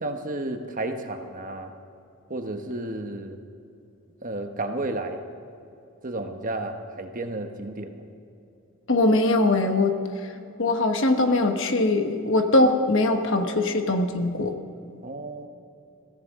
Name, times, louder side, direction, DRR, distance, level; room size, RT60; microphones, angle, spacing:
voice 1, 0.0-1.7 2.3-3.4 4.2-5.2 6.0-8.0 15.0-15.5, right 2 dB, 40° right, 5 dB, 1.1 m, -32 dB
voice 2, 8.9-10.0 10.6-14.6, left 2 dB, 60° left, 6 dB, 1.2 m, -21 dB
22.0 x 16.0 x 3.7 m, 2.7 s
head